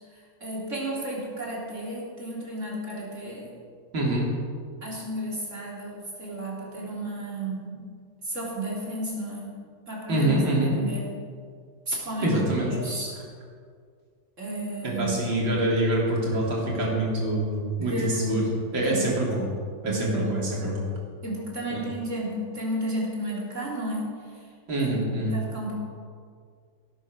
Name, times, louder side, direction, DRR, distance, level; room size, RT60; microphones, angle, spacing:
voice 1, 0.1-3.5 4.8-7.8 8.2-9.5 9.9-11.2 11.9-13.2 14.4-15.5 17.8-19.2 19.8-20.9 21.2-24.1 24.8-25.8, right 1 dB, 40° right, -4 dB, 4.0 m, -33 dB
voice 2, 3.9-4.3 10.1-10.7 12.2-12.7 14.8-18.5 18.7-19.5 19.8-20.8 21.7-21.8 24.7-25.4, right 1 dB, 85° right, -4 dB, 4.0 m, -25 dB
17.0 x 8.9 x 6.5 m, 2.1 s
omnidirectional pair, 2.1 m